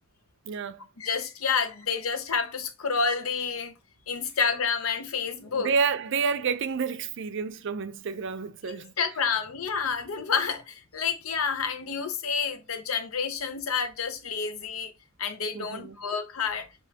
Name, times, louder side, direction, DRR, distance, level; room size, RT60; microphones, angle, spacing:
voice 1, 0.5-0.8 5.5-9.2 9.9-10.0 15.5-16.0, right 5 dB, 60° right, 0.5 m, -30 dB
voice 2, 1.0-3.7 4.1-5.7 9.0-14.9 15.2-16.7, left 5 dB, 85° left, 0.7 m, -29 dB
6.9 x 2.5 x 2.8 m
head